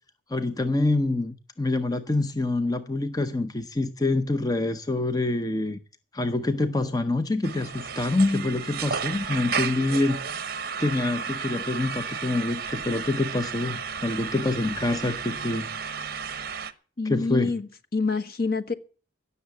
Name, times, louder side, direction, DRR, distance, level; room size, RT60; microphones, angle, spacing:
voice 1, 0.3-5.8 6.1-10.2 10.8-15.7 17.1-17.5, left 2 dB, 20° left, 0.7 m, -26 dB
sound 1, 7.4-16.7, right 6 dB, 50° right, 1.0 m, -33 dB
voice 2, 17.0-18.7, left 4 dB, 50° left, 1.2 m, -27 dB
17.0 x 6.9 x 8.3 m
head